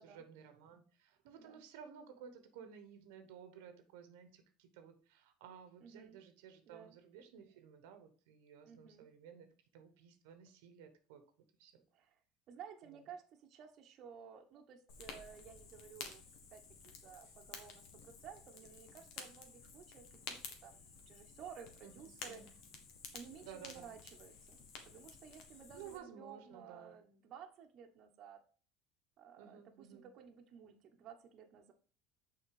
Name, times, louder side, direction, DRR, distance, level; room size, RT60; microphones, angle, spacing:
voice 1, 0.0-9.5 9.7-11.2 11.6-11.8 17.2-17.3 21.8-22.5 23.4-23.9 25.7-27.0 29.4-30.1, right 8 dB, 85° right, 8 dB, 1.1 m, -55 dB
voice 2, 5.8-6.2 6.7-7.0 8.6-9.1 11.9-12.2 12.5-16.2 16.5-22.4 23.1-28.4 29.2-31.7, right 7 dB, 45° right, 3 dB, 1.1 m, -55 dB
Fire, 14.9-26.0, left 5 dB, 60° left, 1.6 m, -52 dB
6.4 x 4.4 x 4.8 m, 0.41 s
cardioid pair, 135°, 0 cm